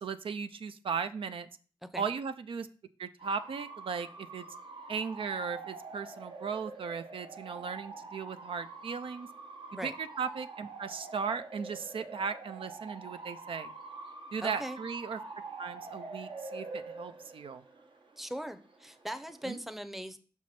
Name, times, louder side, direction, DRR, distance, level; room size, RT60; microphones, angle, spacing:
voice 1, 0.0-1.5 1.9-2.7 3.0-4.5 4.9-9.3 9.8-13.7 14.3-15.2 15.6-17.6 19.4-19.6, right 6 dB, 85° right, 11 dB, 0.4 m, -37 dB
Bark / Motor vehicle (road) / Siren, 3.2-19.5, right 3 dB, 70° right, 1.1 m, -46 dB
voice 2, 14.4-14.8 18.2-20.2, equal, 5° right, 12 dB, 0.6 m, -40 dB
5.9 x 4.7 x 4.2 m, 0.39 s
wide cardioid pair, 65°, 9 cm